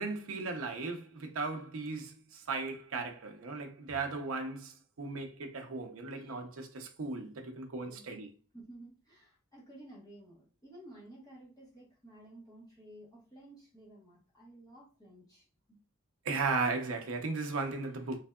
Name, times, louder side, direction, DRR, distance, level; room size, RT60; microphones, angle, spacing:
voice 1, 0.0-8.3 16.2-18.2, right 3 dB, 70° right, 0.6 m, -36 dB
voice 2, 7.8-8.2 8.5-15.8, right 1 dB, 20° left, 1.0 m, -54 dB
3.5 x 3.3 x 2.2 m
head